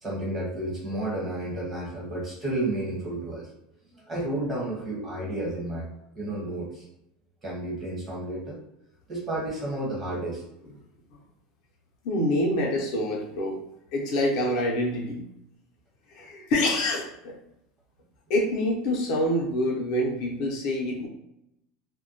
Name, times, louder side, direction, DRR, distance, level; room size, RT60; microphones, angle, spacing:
voice 1, 0.0-3.5 3.9-6.8 7.4-8.6 9.1-10.4, right 1 dB, 25° right, -5 dB, 1.1 m, -31 dB
voice 2, 12.0-13.6 13.9-15.2 16.1-17.3 18.3-21.1, left 1 dB, 60° left, -2 dB, 0.6 m, -26 dB
2.2 x 2.1 x 2.8 m, 0.83 s
supercardioid pair, 130°, 0 cm